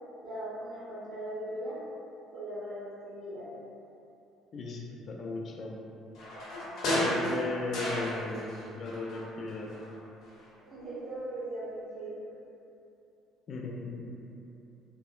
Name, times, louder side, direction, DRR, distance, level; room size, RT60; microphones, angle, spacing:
voice 1, 0.2-1.8 2.3-3.5 10.6-12.2, right 1 dB, 45° right, -12 dB, 1.4 m, -39 dB
voice 2, 4.5-5.8 6.9-9.7 13.5-14.0, left 3 dB, 45° left, -1 dB, 0.3 m, -36 dB
sound 1, 6.1-8.6 8.8-9.9 10.3-10.4, left 1 dB, 65° left, 0.8 m, -33 dB
2.8 x 2.0 x 2.3 m, 2.7 s
cardioid pair, 105°, 0 cm